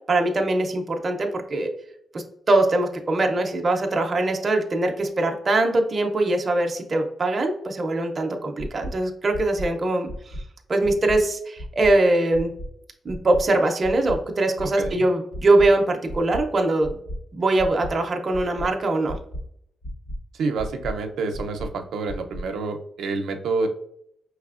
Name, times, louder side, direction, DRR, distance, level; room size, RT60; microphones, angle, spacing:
voice 1, 0.1-1.7 2.1-10.1 10.7-12.5 13.0-17.0 17.3-19.2, right 2 dB, 30° right, 3 dB, 0.5 m, -22 dB
sound 1, 8.6-8.9 9.3-9.7 10.1-10.4 10.8-11.2 11.6-11.9 12.3-12.7 13.1-13.4 13.8-14.2 14.6-14.9 15.3-15.7 16.1-16.4 16.8-17.2 17.6-17.9 18.3-18.7 19.1-19.4 19.8-20.2 20.6-20.9 21.3-21.7 22.1-22.4, equal, 50° left, 0.6 m, -33 dB
voice 2, 20.3-23.7, right 4 dB, 85° right, 5 dB, 0.5 m, -28 dB
5.4 x 3.2 x 2.4 m, 0.71 s
wide cardioid pair, 180°, 0 cm